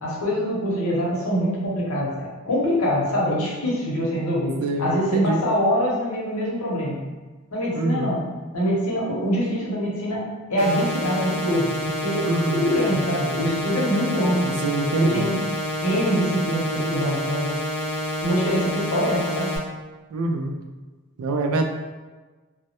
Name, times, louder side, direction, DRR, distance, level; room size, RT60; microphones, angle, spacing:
voice 1, 0.0-7.0 7.5-8.2 8.5-14.5 15.0-15.4 15.8-17.5 18.2-19.5, equal, 85° left, -5 dB, 0.7 m, -24 dB
voice 2, 4.6-5.4 7.7-8.1 12.2-12.6 14.6-15.3 20.1-20.5 21.2-21.7, right 2 dB, 80° right, 4 dB, 0.3 m, -24 dB
sound 1, 10.6-19.6, equal, 50° left, 0.4 m, -28 dB
2.2 x 2.0 x 2.7 m, 1.3 s
head